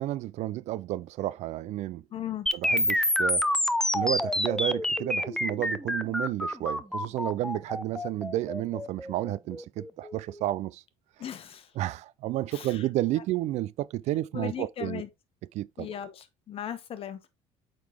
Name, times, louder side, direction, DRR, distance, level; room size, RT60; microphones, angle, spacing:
voice 1, 0.0-2.0 2.5-3.5 3.9-10.8 11.8-15.0 15.5-16.0, right 15 dB, 60° right, 0.4 m, -31 dB
voice 2, 2.1-2.5 11.2-11.7 12.5-12.8 14.3-15.1 15.8-17.2, left 10 dB, 45° left, 1.2 m, -37 dB
sound 1, 2.5-10.4, left 1 dB, 5° left, 0.6 m, -28 dB
8.3 x 3.9 x 3.4 m
cardioid pair, 105°, 13 cm